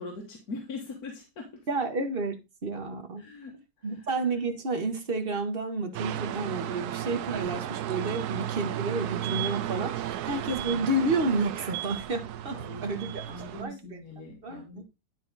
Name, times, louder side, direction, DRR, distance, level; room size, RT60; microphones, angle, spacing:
voice 1, 0.0-1.7 3.2-4.1 12.5-14.8, left 2 dB, 55° left, 1.8 m, -42 dB
voice 2, 1.7-3.3 3.8-13.1 13.6-13.8 14.4-14.8, right 2 dB, 35° right, 1.3 m, -30 dB
sound 1, 5.9-13.6, right 12 dB, 70° right, 1.0 m, -34 dB
10.5 x 4.2 x 4.0 m
omnidirectional pair, 2.0 m